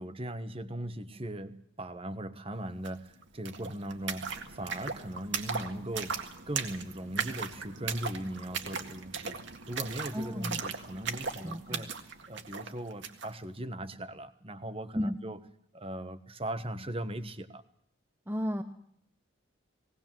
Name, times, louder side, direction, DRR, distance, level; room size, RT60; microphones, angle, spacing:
voice 1, 0.0-6.1 6.5-9.4 9.7-11.9 12.3-15.4 15.7-17.6, right 1 dB, 30° right, 11 dB, 1.2 m, -39 dB
sound 1, 2.8-2.9 3.2-13.3, right 5 dB, 60° right, 1.9 m, -38 dB
voice 2, 10.1-10.6 11.4-11.9 14.9-15.2 18.3-18.6, equal, 10° right, 5 dB, 0.8 m, -33 dB
19.0 x 19.0 x 7.5 m, 0.72 s
head